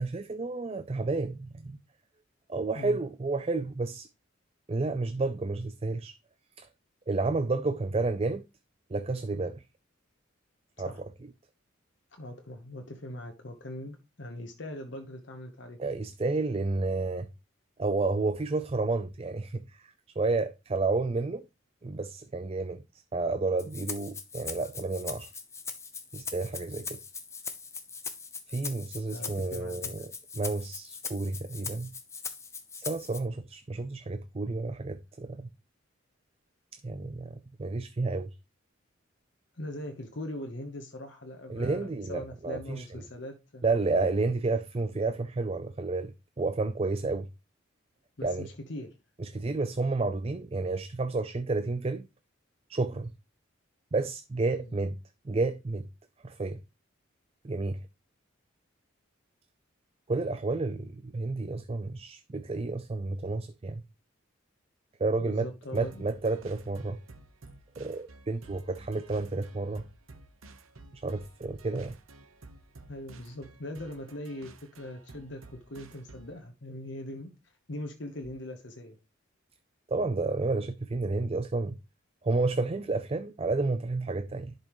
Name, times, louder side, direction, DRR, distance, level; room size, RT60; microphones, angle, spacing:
voice 1, 0.0-1.8 2.5-4.1 4.7-6.2 6.6-6.7 7.1-8.4 8.9-9.6 10.8-10.9 15.8-17.3 17.8-21.4 21.8-22.8 23.1-25.3 26.1-27.0 28.5-30.1 30.4-31.9 32.8-35.5 36.8-38.3 41.5-42.8 43.6-47.3 48.2-48.5 49.2-52.1 52.7-53.1 53.9-55.0 55.2-55.9 56.2-56.6 57.4-57.8 60.1-63.8 65.0-67.0 67.8-69.8 70.9-72.0 79.9-81.8 82.2-84.5, right 3 dB, 30° right, 0.4 m, -31 dB
voice 2, 12.2-15.8 29.1-30.0 39.5-43.6 48.2-48.9 54.5-54.7 65.2-66.1 72.9-79.0, left 1 dB, 60° left, 1.0 m, -41 dB
Rattle (instrument), 23.6-33.2, left 5 dB, 15° left, 0.7 m, -40 dB
sound 1, 65.7-76.4, right 2 dB, 85° right, 0.9 m, -53 dB
11.0 x 5.3 x 3.1 m
head